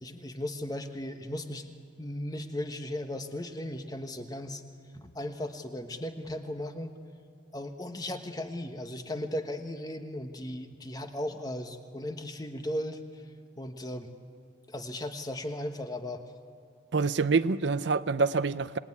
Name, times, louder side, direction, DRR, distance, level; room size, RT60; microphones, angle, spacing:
voice 1, 0.0-4.6 4.9-6.9 7.5-13.2 13.6-14.1 14.7-16.2, left 1 dB, 20° left, 7 dB, 1.2 m, -36 dB
voice 2, 16.9-18.8, right 4 dB, 60° right, 14 dB, 0.6 m, -26 dB
27.5 x 18.5 x 9.8 m, 2.4 s
head